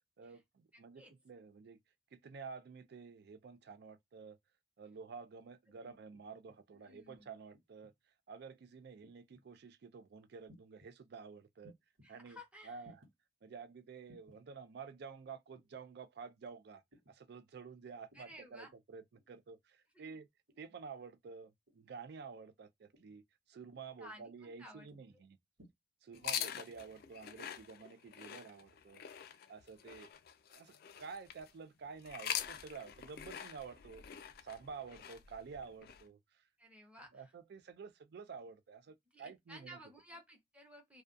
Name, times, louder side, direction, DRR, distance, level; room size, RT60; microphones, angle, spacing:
voice 1, 0.2-1.8 2.1-4.4 4.8-7.9 8.3-11.7 12.1-12.4 12.6-13.0 13.4-16.8 17.1-20.3 20.6-25.4 26.0-29.0 29.5-30.1 30.5-34.0 34.4-36.4 37.1-39.8, right 5 dB, 60° right, 0.4 m, -50 dB
sound 1, 6.1-6.6 7.5-8.0 9.0-9.5 10.5-10.9 11.6-12.1 12.8-13.1 14.1-14.4 15.5-15.9 16.9-17.2 18.1-18.4 19.1-19.5 20.5-20.8 21.7-22.0 22.9-23.2 23.7-24.0 24.9-25.2 25.6-25.7, left 1 dB, 75° right, 1.0 m, -63 dB
voice 2, 6.7-7.3 12.0-12.8 18.1-18.7 19.9-20.2 23.9-24.9 26.1-26.4 36.6-37.3 39.1-41.0, equal, 5° right, 0.7 m, -55 dB
sound 2, 26.1-31.5 32.0-36.0, left 9 dB, 55° left, 0.3 m, -44 dB
2.3 x 2.2 x 2.5 m
head